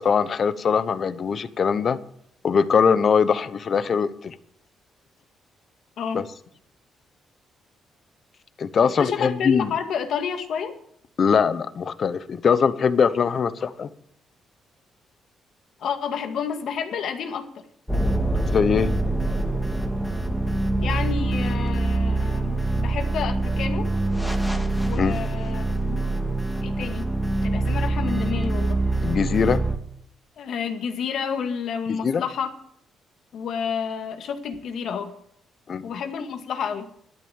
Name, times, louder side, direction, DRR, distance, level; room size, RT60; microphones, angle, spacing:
voice 1, 0.0-2.0 2.4-4.3 6.1-6.2 8.6-9.7 11.2-13.9 18.5-18.9 25.0-25.2 29.0-29.6 31.9-32.2 35.7-35.9, left 6 dB, 50° left, 14 dB, 1.0 m, -21 dB
voice 2, 8.8-10.7 15.8-17.5 20.8-23.9 24.8-26.0 26.6-27.1 27.4-28.8 30.4-32.5 33.3-35.1 35.8-36.9, left 7 dB, 70° left, 6 dB, 2.0 m, -30 dB
sound 1, 17.9-29.8, right 2 dB, ahead, 2.2 m, -24 dB
12.0 x 10.5 x 7.2 m, 0.70 s
cardioid pair, 90°, 0 cm